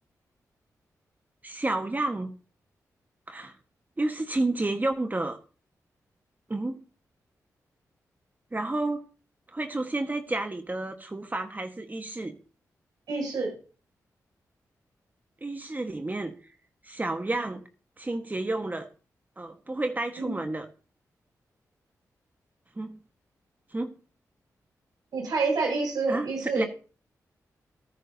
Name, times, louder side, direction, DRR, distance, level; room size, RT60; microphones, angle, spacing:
voice 1, 1.4-2.3 3.3-3.5 4.0-5.4 6.5-6.8 8.5-9.0 9.5-12.4 15.4-16.3 16.8-17.6 18.0-18.9 19.4-20.7 22.8-22.9 23.7-23.9 26.1-26.3 26.5-26.6, right 2 dB, 25° right, 7 dB, 1.4 m, -30 dB
voice 2, 13.1-13.5 20.2-20.3 25.1-26.7, right 4 dB, 80° right, 0 dB, 7.5 m, -28 dB
18.0 x 10.0 x 2.8 m, 0.35 s
cardioid pair, 55°, 7 cm